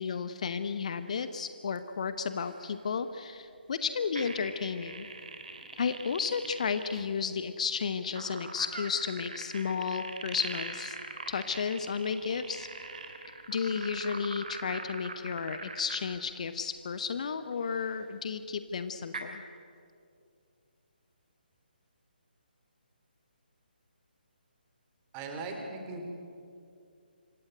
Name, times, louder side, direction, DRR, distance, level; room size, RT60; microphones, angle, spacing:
voice 1, 0.0-5.1 5.8-11.0 11.3-12.7 13.5-19.4, left 6 dB, 40° left, 11 dB, 1.0 m, -33 dB
sound 1, 1.1-1.2 1.7-1.8 2.4-2.7 4.2-7.1 8.1-16.2 18.3-18.4 19.1-19.2, right 4 dB, 50° right, 3.1 m, -42 dB
voice 2, 25.1-26.0, right 3 dB, 20° right, 4 dB, 3.3 m, -38 dB
26.0 x 15.5 x 9.5 m, 2.4 s
figure-of-eight pair, 140°, 5 cm